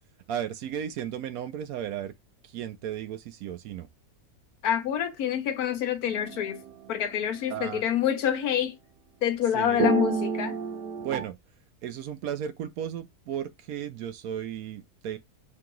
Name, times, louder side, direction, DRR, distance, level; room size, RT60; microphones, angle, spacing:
voice 1, 0.3-2.1 2.4-3.9 7.5-7.8 9.5-9.9 11.0-11.4 11.8-15.2, right 9 dB, 70° right, 1.0 m, -34 dB
voice 2, 4.6-6.6 6.9-8.8 9.2-10.6, left 10 dB, 70° left, 1.2 m, -27 dB
sound 1, 6.1-6.7 9.8-11.3, right 5 dB, 90° right, 1.3 m, -29 dB
3.7 x 2.9 x 3.7 m
omnidirectional pair, 1.7 m